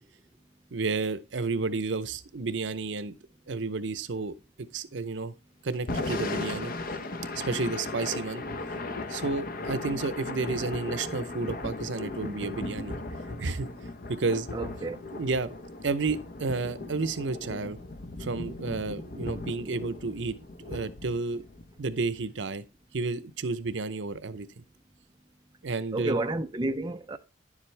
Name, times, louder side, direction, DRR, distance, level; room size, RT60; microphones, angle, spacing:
voice 1, 0.7-3.1 3.5-4.3 4.7-5.3 5.6-6.7 7.3-8.4 9.1-12.9 13.4-13.7 14.1-14.5 15.1-15.5 15.8-17.8 18.2-20.3 20.6-21.4 21.8-22.6 22.9-24.5 25.6-26.2, right 3 dB, 80° right, 0.7 m, -31 dB
Thunder / Rain, 5.7-22.0, left 2 dB, 50° left, 0.8 m, -37 dB
voice 2, 14.5-15.0 25.9-27.2, right 2 dB, 25° right, 0.5 m, -30 dB
10.5 x 7.3 x 3.3 m
head